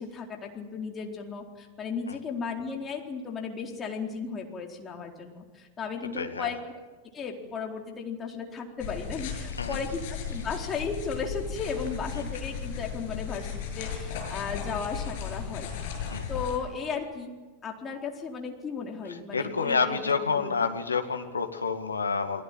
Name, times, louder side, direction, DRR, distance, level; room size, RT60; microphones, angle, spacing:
voice 1, 0.0-6.6 7.1-13.5 13.8-15.7 16.3-17.3 17.6-20.7, left 5 dB, 20° left, 1 dB, 4.3 m, -35 dB
voice 2, 6.2-6.5 9.6-9.8 12.1-12.2 16.1-16.3 19.3-22.4, left 5 dB, 75° left, 6 dB, 2.1 m, -28 dB
sound 1, 8.8-16.6, left 7 dB, 50° left, 7.3 m, -35 dB
29.5 x 20.5 x 7.8 m, 1.3 s
figure-of-eight pair, 90°, 0 cm